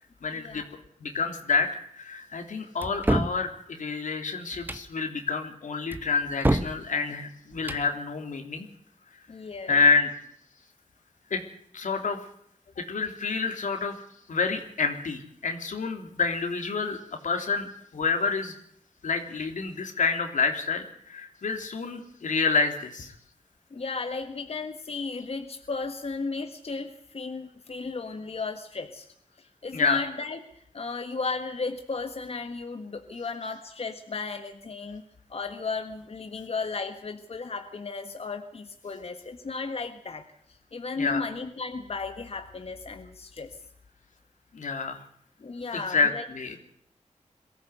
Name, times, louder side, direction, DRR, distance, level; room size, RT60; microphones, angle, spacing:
voice 1, 0.2-0.6 1.0-1.7 1.9-8.7 9.7-10.1 11.3-11.4 11.7-12.2 12.8-13.9 14.3-17.0 17.2-18.5 19.0-23.1 29.7-30.0 41.0-41.3 44.5-45.0 45.7-46.6, left 4 dB, 85° left, 4 dB, 3.3 m, -28 dB
sound 1, 2.8-3.4 4.5-4.9 5.9-6.8 7.5-7.9, right 1 dB, 15° right, 1.3 m, -27 dB
voice 2, 9.3-9.8 23.7-29.1 29.6-30.4 30.7-35.0 35.3-40.2 40.7-43.5 45.4-46.2, left 4 dB, 50° left, 6 dB, 1.5 m, -34 dB
22.5 x 15.0 x 8.1 m, 0.69 s
wide cardioid pair, 100°, 13 cm